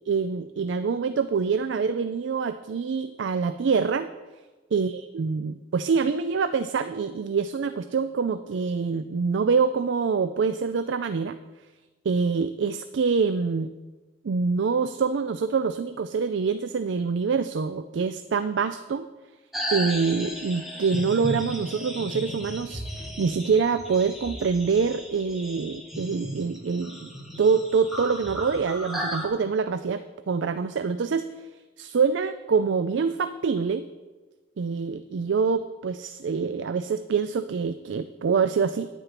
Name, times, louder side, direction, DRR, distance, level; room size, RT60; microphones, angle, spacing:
voice 1, 0.1-4.1 4.7-11.4 12.1-13.7 14.2-19.1 19.7-27.1 27.4-30.0 30.3-31.3 31.8-33.9 34.6-38.9, right 5 dB, 75° right, 11 dB, 0.4 m, -25 dB
sound 1, 19.5-29.3, equal, ahead, 1.8 m, -35 dB
9.8 x 9.4 x 5.8 m, 1.2 s
head